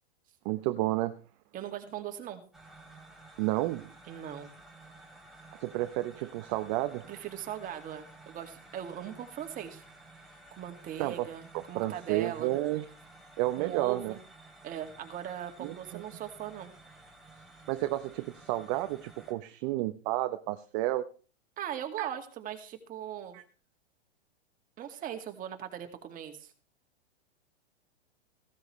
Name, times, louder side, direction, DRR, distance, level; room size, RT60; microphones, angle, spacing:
voice 1, 0.4-1.1 3.4-3.9 5.5-7.1 11.0-11.3 11.5-12.9 13.4-14.1 15.6-16.0 17.7-21.1 22.0-22.1 23.3-23.4, right 16 dB, 40° right, 10 dB, 0.8 m, -31 dB
voice 2, 1.5-2.4 4.1-4.5 7.1-9.8 10.5-12.5 13.6-14.2 14.6-16.7 21.6-23.4 24.8-26.5, right 10 dB, 25° right, 6 dB, 2.0 m, -39 dB
sound 1, 2.5-19.3, right 2 dB, ahead, 2.6 m, -54 dB
16.0 x 13.0 x 3.2 m, 0.38 s
hypercardioid pair, 125°, 32 cm